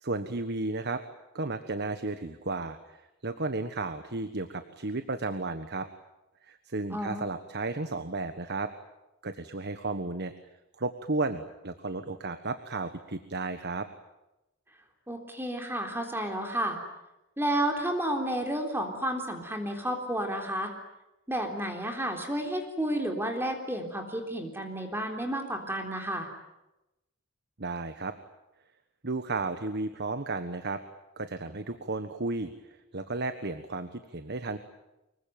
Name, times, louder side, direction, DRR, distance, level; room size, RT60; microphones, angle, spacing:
voice 1, 0.0-1.0 1.3-5.9 6.4-8.7 9.2-10.3 10.8-13.9 27.6-28.1 29.0-30.8 31.2-34.6, right 3 dB, 55° right, 10 dB, 1.4 m, -33 dB
voice 2, 6.9-7.3 15.1-16.8 17.4-20.7 21.3-26.3, right 1 dB, 10° right, 4 dB, 3.6 m, -31 dB
25.0 x 23.0 x 9.2 m, 0.94 s
head